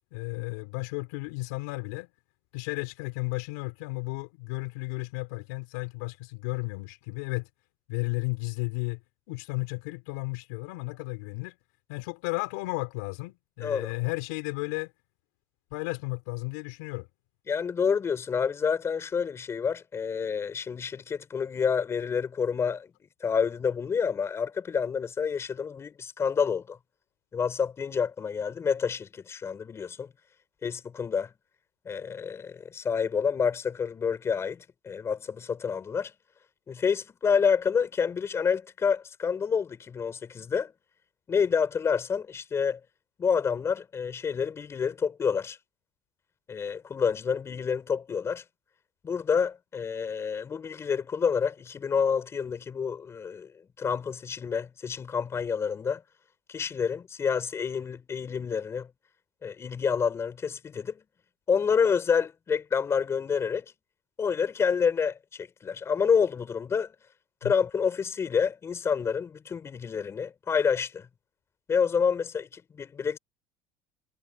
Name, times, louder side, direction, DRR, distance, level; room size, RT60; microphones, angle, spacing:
voice 1, 0.1-2.1 2.5-7.5 7.9-9.0 9.3-11.6 11.9-14.9 15.7-17.1 67.4-67.5, left 26 dB, 80° left, 4.6 m, -33 dB
voice 2, 13.6-13.9 17.5-22.9 23.2-26.8 27.3-30.1 30.6-31.3 31.8-36.1 36.7-40.7 41.3-42.8 43.2-45.6 46.5-48.4 49.0-53.5 53.8-56.0 56.5-58.9 59.4-61.0 61.5-63.7 64.2-66.9 67.4-71.1 71.7-73.2, left 6 dB, 30° left, 4.7 m, -28 dB
supercardioid pair, 105°, 9 cm